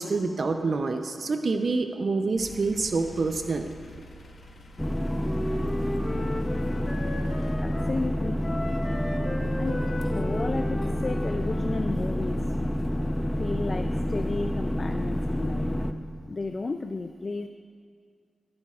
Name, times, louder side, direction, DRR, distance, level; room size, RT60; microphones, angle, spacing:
voice 1, 0.0-3.7, right 3 dB, 65° right, 6 dB, 0.6 m, -27 dB
sound 1, 2.4-7.5, left 1 dB, 75° left, 1.1 m, -48 dB
sound 2, 4.8-15.9, equal, 10° left, 0.7 m, -28 dB
Wind instrument woodwind instrument, 4.9-7.9 8.4-11.9, left 1 dB, 30° left, 1.9 m, -36 dB
voice 2, 7.6-8.4 9.6-12.4 13.4-15.7 16.3-17.5, left 3 dB, 50° left, 7 dB, 0.4 m, -33 dB
21.0 x 8.6 x 2.4 m, 2.2 s
cardioid pair, 50°, 0 cm